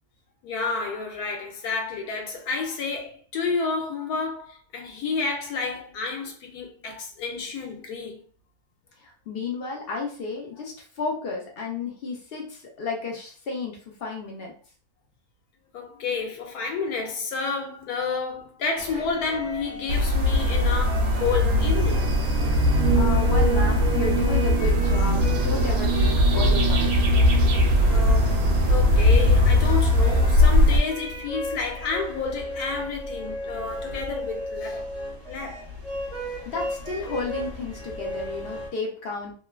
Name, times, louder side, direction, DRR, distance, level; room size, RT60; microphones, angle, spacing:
voice 1, 0.4-8.2 15.7-22.1 27.9-34.9 35.3-35.7, left 4 dB, 90° left, 1.2 m, -30 dB
voice 2, 9.0-14.5 22.9-27.0 36.5-39.3, left 4 dB, 60° left, 0.6 m, -32 dB
sound 1, 18.8-38.7, equal, 30° right, 0.9 m, -36 dB
sound 2, 19.9-30.8, left 1 dB, 80° right, 1.1 m, -20 dB
sound 3, 20.2-30.2, right 5 dB, 60° right, 0.9 m, -30 dB
2.9 x 2.2 x 2.2 m
omnidirectional pair, 1.6 m